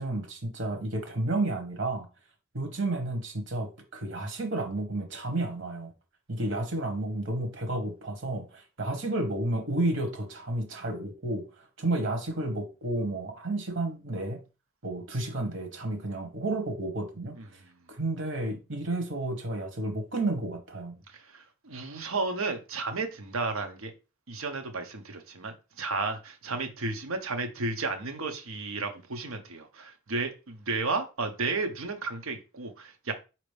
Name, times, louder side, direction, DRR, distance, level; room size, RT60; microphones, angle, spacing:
voice 1, 0.0-2.0 2.5-5.9 6.3-14.4 14.8-17.6 17.9-21.0, right 2 dB, 60° right, 1.2 m, -31 dB
voice 2, 21.1-23.9 24.3-33.1, right 3 dB, 85° right, 0.9 m, -33 dB
5.1 x 2.9 x 3.3 m
head